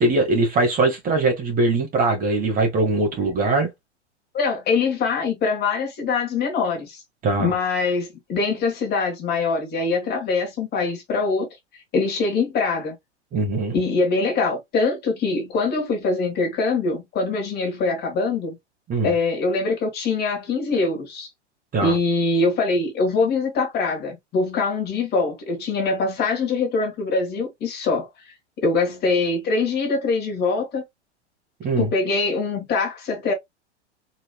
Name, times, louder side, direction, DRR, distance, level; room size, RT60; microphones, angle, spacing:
voice 1, 0.0-3.7 7.2-7.5 13.3-13.8 18.9-19.1 21.7-22.0 31.6-31.9, right 2 dB, 25° right, 1.4 m, -21 dB
voice 2, 4.3-7.0 7.4-11.5 11.9-13.0 13.7-18.6 19.0-21.3 21.8-28.1 28.6-30.8 31.8-33.3, left 4 dB, 30° left, 1.5 m, -23 dB
4.1 x 3.0 x 2.2 m
figure-of-eight pair, 100°, 35 cm